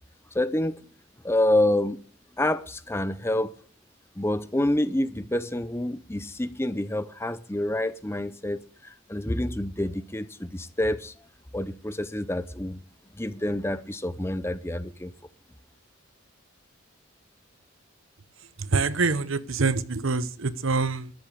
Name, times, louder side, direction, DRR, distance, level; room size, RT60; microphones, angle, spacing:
voice 1, 0.3-0.8 1.2-2.0 2.4-3.5 4.2-11.1 11.5-12.8 13.2-15.1, left 1 dB, 10° left, 0.6 m, -27 dB
voice 2, 18.6-21.1, right 4 dB, 75° right, 0.9 m, -25 dB
13.0 x 10.5 x 6.7 m
head